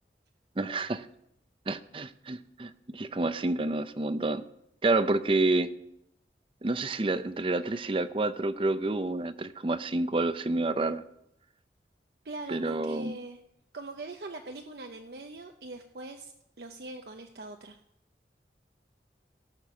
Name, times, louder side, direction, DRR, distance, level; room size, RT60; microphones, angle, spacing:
voice 1, 0.6-1.1 1.7-4.4 4.8-5.7 6.6-11.0 12.5-13.2, right 2 dB, 30° right, 13 dB, 0.5 m, -29 dB
voice 2, 12.2-13.4 13.7-17.8, right 2 dB, 65° right, 4 dB, 0.7 m, -42 dB
17.0 x 6.6 x 5.9 m, 0.81 s
head